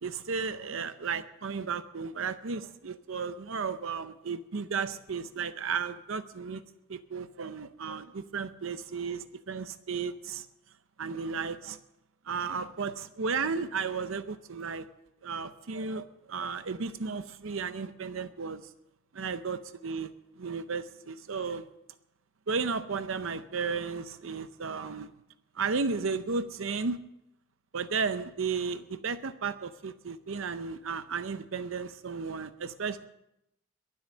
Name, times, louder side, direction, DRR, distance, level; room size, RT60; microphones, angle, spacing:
voice 1, 0.0-6.6 6.9-10.5 11.0-11.8 12.3-14.9 15.2-18.6 19.1-20.1 20.4-21.6 22.5-25.1 25.6-27.0 27.7-33.1, right 5 dB, 70° right, 11 dB, 0.6 m, -34 dB
22.5 x 7.9 x 6.2 m, 0.86 s
head